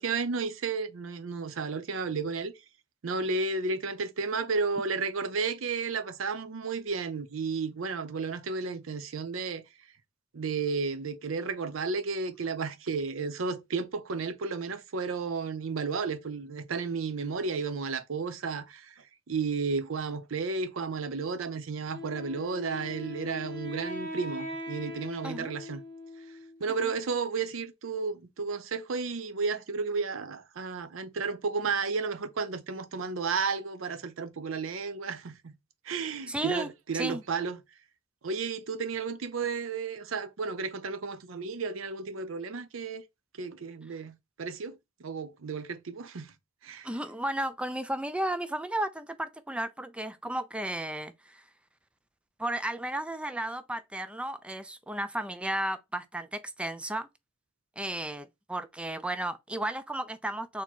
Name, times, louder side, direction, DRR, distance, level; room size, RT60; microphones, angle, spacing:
voice 1, 0.0-2.5 3.0-9.6 10.3-18.9 19.3-25.8 26.6-35.5 35.9-37.6 38.2-43.0 43.4-46.3 46.6-46.9, right 4 dB, 75° right, 0.6 m, -33 dB
Wind instrument woodwind instrument, 21.9-26.7, left 2 dB, 55° right, 1.2 m, -40 dB
voice 2, 36.3-37.2 46.8-51.4 52.4-57.1 57.8-60.6, right 1 dB, 5° right, 0.4 m, -34 dB
4.2 x 2.9 x 4.4 m
head